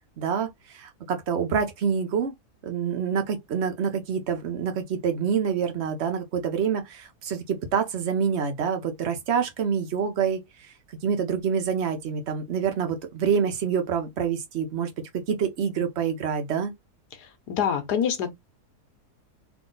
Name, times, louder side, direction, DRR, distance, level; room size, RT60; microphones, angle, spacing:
voice 1, 0.2-2.3 2.6-10.4 11.0-14.9 15.3-16.7, right 7 dB, 50° right, 1.0 m, -26 dB
voice 2, 17.2-18.3, left 8 dB, 85° left, 1.5 m, -26 dB
3.7 x 2.7 x 3.8 m
omnidirectional pair, 1.7 m